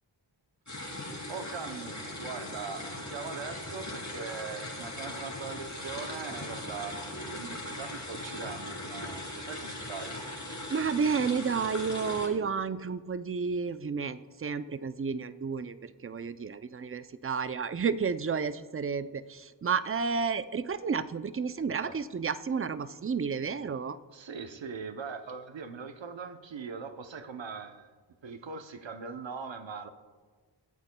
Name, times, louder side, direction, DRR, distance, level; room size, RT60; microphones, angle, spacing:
sound 1, 0.7-12.3, left 1 dB, 40° left, 2.8 m, -39 dB
voice 1, 1.3-10.2 21.9-22.0 24.1-27.9 28.2-29.9, right 5 dB, 80° right, 0.8 m, -41 dB
voice 2, 10.7-24.0, right 5 dB, 30° right, 0.4 m, -31 dB
22.0 x 8.3 x 2.2 m
wide cardioid pair, 55°, 45 cm